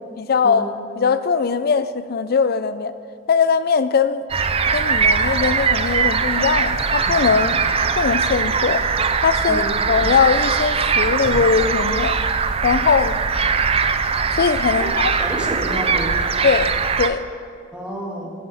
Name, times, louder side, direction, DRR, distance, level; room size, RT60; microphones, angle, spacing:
voice 1, 0.2-0.6 1.0-2.9 3.3-4.3 4.7-8.9 9.2-9.6 9.9-12.2 12.6-13.2 14.3-15.1 16.4-17.2, left 5 dB, 50° left, 14 dB, 0.4 m, -20 dB
sound 1, 4.3-17.1, right 5 dB, 30° right, 0.4 m, -21 dB
voice 2, 15.2-16.2 17.7-18.3, right 1 dB, 5° right, -3 dB, 1.8 m, -29 dB
14.5 x 8.6 x 4.2 m, 2.4 s
head